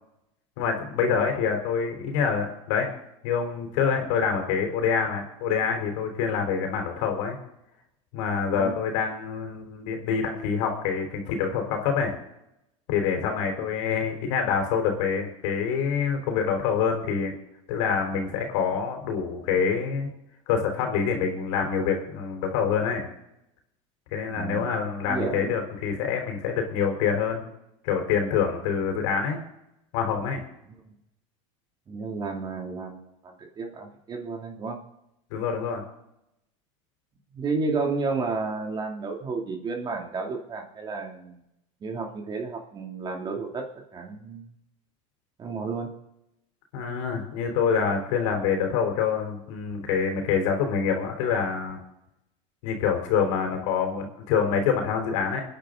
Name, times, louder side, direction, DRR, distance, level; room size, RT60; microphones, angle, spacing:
voice 1, 0.6-2.9 3.2-7.4 8.1-12.1 12.9-17.3 17.7-20.1 20.5-23.1 24.1-27.5 27.8-29.4 29.9-30.4 35.3-35.8 46.7-51.8 52.6-55.4, left 6 dB, 70° left, 3 dB, 3.8 m, -26 dB
voice 2, 24.3-24.7 25.1-25.6 31.9-34.8 37.3-41.4 41.8-43.6 43.9-44.5 45.4-45.9, right 4 dB, 25° right, 2 dB, 2.7 m, -32 dB
25.0 x 10.0 x 3.8 m, 0.86 s
supercardioid pair, 120°, 16 cm